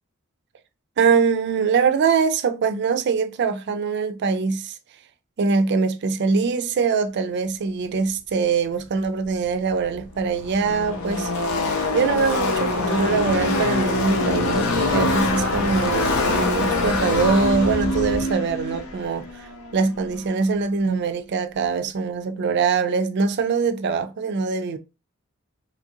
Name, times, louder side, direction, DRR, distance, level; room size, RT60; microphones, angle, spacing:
voice 1, 1.0-4.8 5.4-11.3 11.9-19.2 19.7-24.8, right 5 dB, 55° right, 0.4 m, -23 dB
Car passing by / Race car auto racing, 9.4-9.5 9.7-20.3, left 2 dB, 85° left, 0.6 m, -24 dB
2.9 x 2.5 x 2.7 m
head